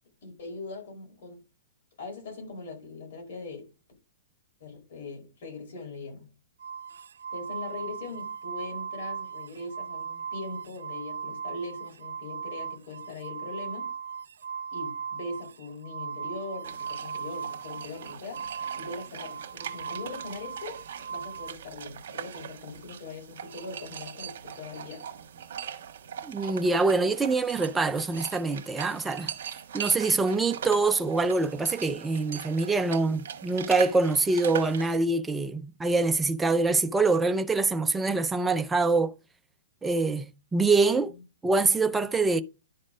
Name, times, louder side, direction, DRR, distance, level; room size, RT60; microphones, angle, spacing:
voice 1, 0.2-1.4 2.0-3.7 4.6-6.3 7.3-13.9 14.7-18.4 18.7-20.8 21.1-25.1 41.0-41.2, left 3 dB, 55° left, 4.6 m, -41 dB
sound 1, 6.6-21.5, right 6 dB, 80° right, 0.5 m, -38 dB
sound 2, 16.6-35.0, right 8 dB, 60° right, 1.4 m, -41 dB
voice 2, 26.2-29.3 29.7-39.1 39.8-40.3 40.5-41.1 41.4-42.4, right 3 dB, 5° right, 0.4 m, -25 dB
11.0 x 4.2 x 5.0 m
hypercardioid pair, 160°, 0 cm